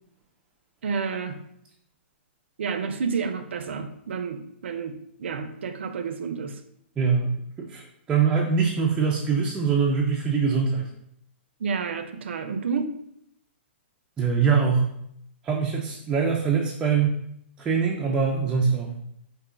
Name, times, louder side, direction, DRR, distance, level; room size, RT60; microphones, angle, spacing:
voice 1, 0.8-1.4 2.6-6.6 11.6-12.9, right 5 dB, 70° right, 8 dB, 0.5 m, -30 dB
voice 2, 7.0-10.9 14.2-14.9 15.4-17.1 17.6-18.9, right 5 dB, 15° right, -2 dB, 0.4 m, -23 dB
4.9 x 2.6 x 3.7 m, 0.74 s
hypercardioid pair, 150°, 7 cm